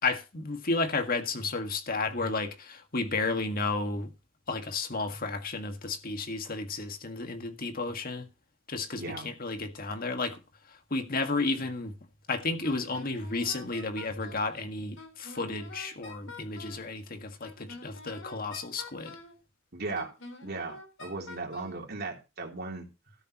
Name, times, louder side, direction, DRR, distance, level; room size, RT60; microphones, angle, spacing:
voice 1, 0.0-4.1 4.5-8.3 8.7-10.4 10.7-11.9 12.3-19.2, left 3 dB, 45° left, 1.8 m, -32 dB
voice 2, 8.9-9.3 19.7-20.1 20.4-22.9, right 3 dB, 50° right, 3.4 m, -37 dB
Wind instrument woodwind instrument, 12.6-14.5 15.0-16.9 17.4-19.4 19.9-21.8, left 2 dB, 90° left, 4.0 m, -47 dB
13.0 x 11.5 x 3.0 m
head